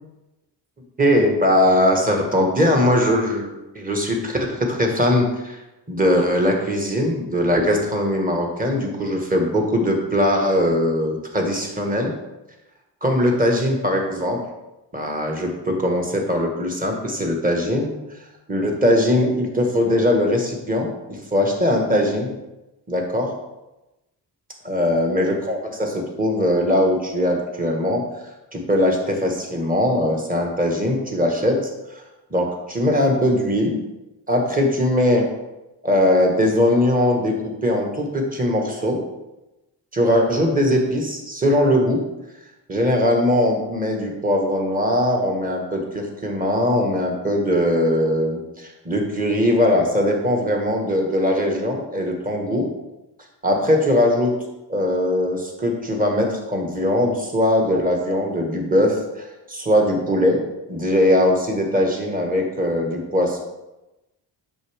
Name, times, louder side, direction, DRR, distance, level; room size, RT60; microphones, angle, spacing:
voice 1, 1.0-5.6 5.9-12.1 13.0-14.4 14.9-17.9 18.5-20.9 21.3-22.3 22.9-23.3 24.6-28.0 28.5-31.6 32.3-33.8 34.3-35.3 35.8-37.4 37.6-39.0 39.9-42.0 42.7-52.6 53.4-54.3 54.7-60.4 60.7-63.4, left 1 dB, 20° right, 2 dB, 1.6 m, -20 dB
8.1 x 6.2 x 3.5 m, 0.99 s
cardioid pair, 105°, 43 cm